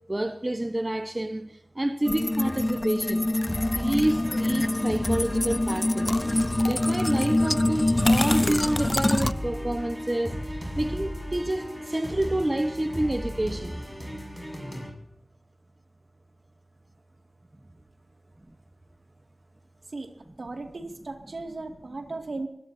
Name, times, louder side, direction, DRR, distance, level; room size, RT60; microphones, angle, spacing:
voice 1, 0.1-3.3 3.7-6.2 6.6-13.8 18.5-18.6, right 1 dB, 30° right, 1.2 m, -28 dB
sound 1, 2.1-9.3, left 1 dB, 30° left, 0.5 m, -25 dB
sound 2, 3.5-14.9, equal, 5° right, 6.9 m, -35 dB
voice 2, 20.4-22.5, right 3 dB, 75° right, 2.3 m, -36 dB
23.5 x 17.5 x 2.8 m
cardioid pair, 45°, 0 cm